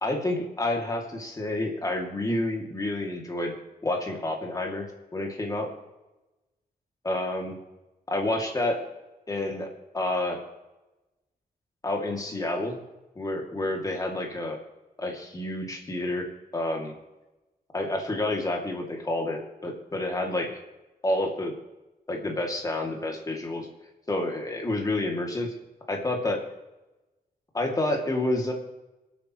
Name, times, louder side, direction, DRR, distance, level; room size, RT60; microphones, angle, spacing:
voice 1, 0.0-3.5 3.8-5.7 7.0-7.5 8.1-8.8 9.3-9.7 9.9-10.4 11.8-12.8 13.2-14.6 15.0-16.9 17.7-20.6 21.0-21.5 22.1-23.7 24.1-25.5 25.9-26.4 27.5-28.5, left 2 dB, 20° left, 1 dB, 2.4 m, -29 dB
26.5 x 9.0 x 3.1 m, 1.0 s
wide cardioid pair, 160°, 16 cm